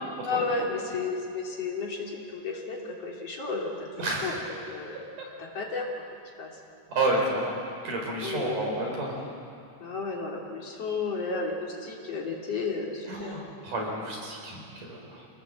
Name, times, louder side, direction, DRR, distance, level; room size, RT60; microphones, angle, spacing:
voice 1, 0.2-2.8 3.0-4.4 4.7-5.0 5.4-5.8 6.4-6.5 8.2-8.6 9.8-13.4, left 4 dB, 35° left, -2 dB, 3.6 m, -32 dB
voice 2, 4.0-4.3 6.9-7.6 7.8-9.1 13.1-14.6 14.9-15.0, right 2 dB, 45° right, -1 dB, 5.6 m, -29 dB
26.0 x 20.0 x 7.8 m, 2.5 s
omnidirectional pair, 5.3 m